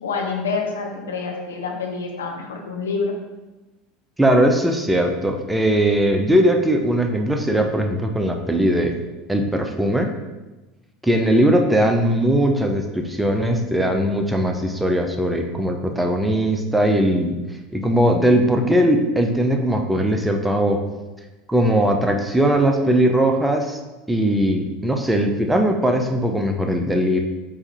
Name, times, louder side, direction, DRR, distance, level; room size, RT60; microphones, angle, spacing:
voice 1, 0.0-3.1, left 4 dB, 85° left, 1 dB, 0.8 m, -27 dB
voice 2, 4.2-8.9 9.3-10.1 11.0-17.3 17.7-20.8 21.5-23.8 24.1-27.2, right 1 dB, 5° right, 3 dB, 0.6 m, -19 dB
4.8 x 2.6 x 4.1 m, 1.1 s
hypercardioid pair, 85°, 0 cm